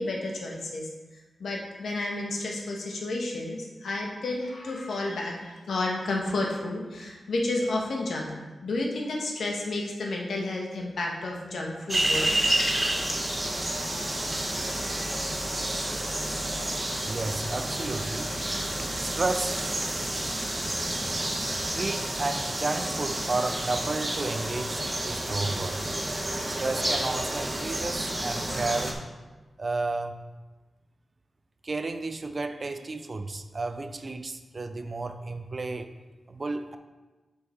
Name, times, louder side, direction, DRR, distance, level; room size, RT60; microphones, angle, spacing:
voice 1, 0.0-8.3 8.6-12.5 12.7-13.1, left 2 dB, 80° left, -1 dB, 1.4 m, -31 dB
sound 1, 11.9-28.9, right 1 dB, 20° right, 1.0 m, -30 dB
voice 2, 17.0-18.3 19.0-20.5 21.3-25.8 26.5-29.0 29.6-30.2 31.6-35.9 36.3-36.8, right 3 dB, 40° right, 8 dB, 0.5 m, -32 dB
6.6 x 5.5 x 4.5 m, 1.2 s
wide cardioid pair, 115°, 0 cm